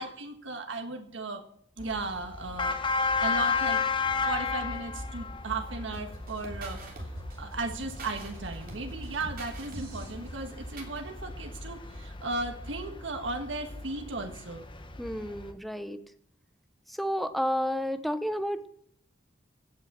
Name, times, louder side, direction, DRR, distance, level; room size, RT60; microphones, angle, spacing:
voice 1, 0.0-1.5 1.8-2.8 3.2-3.8 4.2-6.9 7.4-14.7, right 3 dB, 90° right, 5 dB, 1.5 m, -36 dB
sound 1, 1.8-15.5, left 4 dB, 25° left, 1.1 m, -34 dB
sound 2, 5.9-11.0, right 1 dB, 50° right, 3.1 m, -44 dB
voice 2, 15.0-16.0 16.9-18.7, equal, ahead, 10 dB, 0.8 m, -31 dB
15.5 x 6.3 x 7.3 m, 0.66 s
head